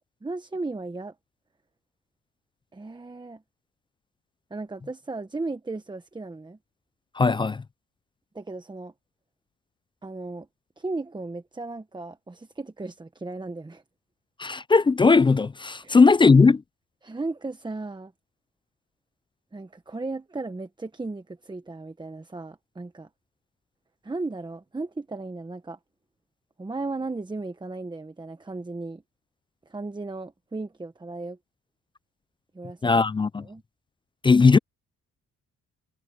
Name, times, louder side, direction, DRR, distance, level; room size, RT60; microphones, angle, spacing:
voice 1, 0.2-1.1 2.7-3.4 4.5-6.6 8.3-8.9 10.0-10.5 10.8-13.8 15.8-16.0 17.0-18.1 19.5-23.1 24.0-25.8 26.6-29.0 29.7-31.4 32.5-32.9 33.4-33.6, right 3 dB, 15° right, 1.2 m, -35 dB
voice 2, 7.2-7.6 14.4-16.6 32.8-33.4 34.2-34.6, left 4 dB, 15° left, 0.3 m, -18 dB
cardioid pair, 90°, 30 cm